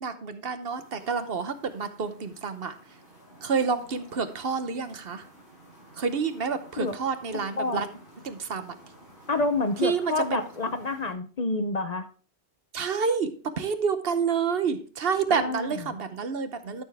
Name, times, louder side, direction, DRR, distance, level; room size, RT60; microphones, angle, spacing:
voice 1, 0.0-2.8 3.4-5.3 6.0-7.9 8.2-8.8 9.8-10.4 12.7-16.8, right 5 dB, 60° right, 10 dB, 1.0 m, -29 dB
sound 1, 0.6-11.1, equal, 60° left, 6.2 m, -52 dB
voice 2, 9.3-12.1 15.3-15.7, left 3 dB, 45° left, 9 dB, 0.7 m, -28 dB
12.5 x 6.9 x 3.4 m, 0.39 s
omnidirectional pair, 1.1 m